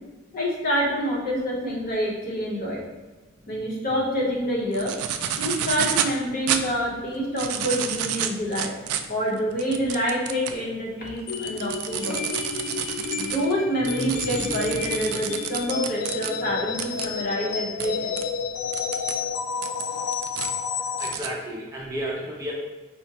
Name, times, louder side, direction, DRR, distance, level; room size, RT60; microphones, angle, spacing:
voice 1, 0.3-2.8 3.5-4.9 5.4-8.8 9.1-12.2 13.1-18.1, equal, 40° left, -4 dB, 0.8 m, -27 dB
sound 1, 4.7-6.1 6.5-6.6 7.2-10.6 11.1-16.3 16.8-17.1 17.8-17.9 18.2-18.3 18.7-19.1 19.6-20.5 21.0-21.3, right 9 dB, 85° right, 0.3 m, -29 dB
sound 2, 11.3-21.2, left 6 dB, 85° left, 0.3 m, -31 dB
voice 2, 21.0-22.5, equal, 15° right, -3 dB, 0.4 m, -32 dB
4.9 x 2.1 x 2.7 m, 1.3 s
head